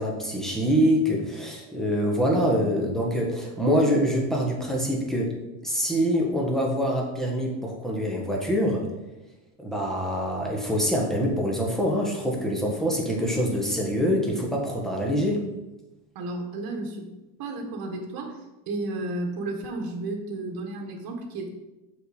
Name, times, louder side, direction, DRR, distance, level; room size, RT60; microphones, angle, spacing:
voice 1, 0.0-5.3 5.6-8.9 9.6-15.4, equal, ahead, -2 dB, 1.3 m, -25 dB
voice 2, 16.1-17.1 17.4-18.4 18.7-21.5, right 2 dB, 60° right, 2 dB, 1.3 m, -32 dB
6.3 x 4.2 x 4.9 m, 1.0 s
cardioid pair, 145°, 40 cm